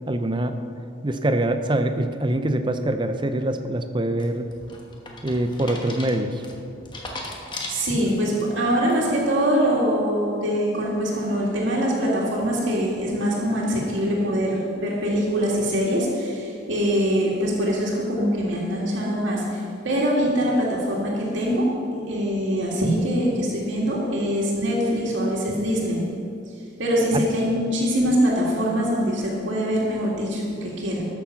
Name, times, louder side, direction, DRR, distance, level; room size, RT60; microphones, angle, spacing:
voice 1, 0.1-0.5 1.0-4.4 5.2-6.4 27.1-27.2, right 1 dB, 25° right, 8 dB, 0.6 m, -24 dB
sound 1, 4.2-8.4 8.9-9.3, left 2 dB, 25° left, 1.2 m, -37 dB
voice 2, 7.7-26.0 26.8-31.1, equal, 70° right, -4 dB, 2.3 m, -23 dB
12.5 x 7.1 x 5.8 m, 2.5 s
head